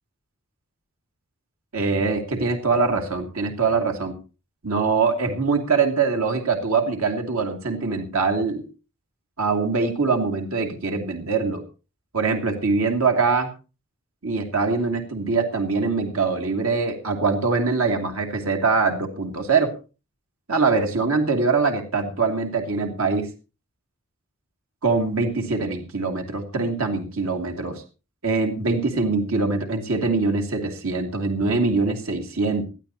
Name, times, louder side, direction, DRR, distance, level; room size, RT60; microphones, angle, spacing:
voice 1, 1.7-4.1 4.6-8.6 9.4-11.6 12.1-13.5 14.2-19.7 20.5-23.3 24.8-27.8 28.2-32.6, right 4 dB, 85° right, 2 dB, 2.5 m, -23 dB
20.0 x 12.5 x 2.9 m, 0.32 s
head